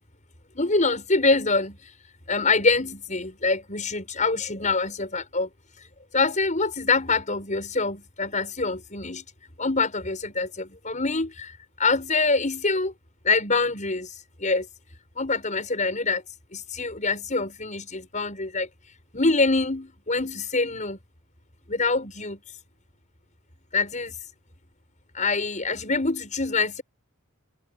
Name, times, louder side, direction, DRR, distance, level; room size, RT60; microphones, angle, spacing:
voice 1, 0.5-1.9 2.3-5.5 6.1-9.2 9.6-12.9 13.2-14.1 14.4-14.7 15.2-16.2 16.5-18.7 19.1-21.0 21.7-22.4 23.7-24.1 25.1-26.8, left 3 dB, 35° left, 6.7 m, -25 dB
head